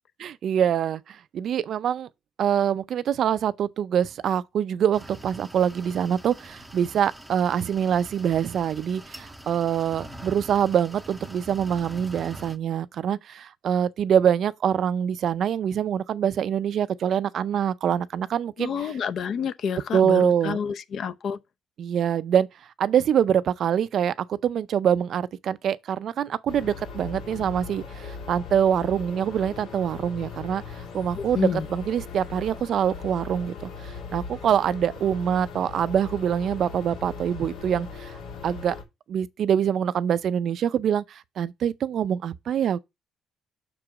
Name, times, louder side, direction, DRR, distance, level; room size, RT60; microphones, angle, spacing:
voice 1, 0.2-2.1 2.4-18.9 19.9-20.6 21.8-22.5 22.8-30.6 30.9-38.1 38.4-38.8 39.1-42.8, right 9 dB, 55° right, 0.4 m, -25 dB
sound 1, 4.9-12.6, right 1 dB, 5° right, 0.6 m, -44 dB
voice 2, 18.6-21.4 31.2-31.7, left 7 dB, 50° left, 0.6 m, -29 dB
sound 2, 26.5-38.8, left 5 dB, 90° left, 2.8 m, -39 dB
6.1 x 4.8 x 4.7 m
cardioid pair, 140°, 0 cm